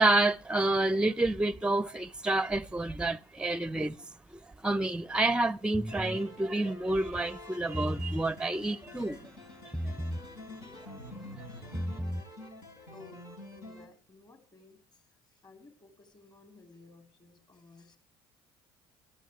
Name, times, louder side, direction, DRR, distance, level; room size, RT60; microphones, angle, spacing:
voice 1, 0.0-4.0 4.3-9.3, right 2 dB, 5° right, 0.6 m, -29 dB
sound 1, 5.7-6.2 7.6-8.3 9.7-10.3 11.6-12.3, equal, 10° left, 1.0 m, -34 dB
sound 2, 5.9-13.9, left 1 dB, 80° left, 4.0 m, -48 dB
voice 2, 12.9-18.0, left 3 dB, 35° left, 3.5 m, -56 dB
23.5 x 14.0 x 3.1 m
hypercardioid pair, 70°, 12 cm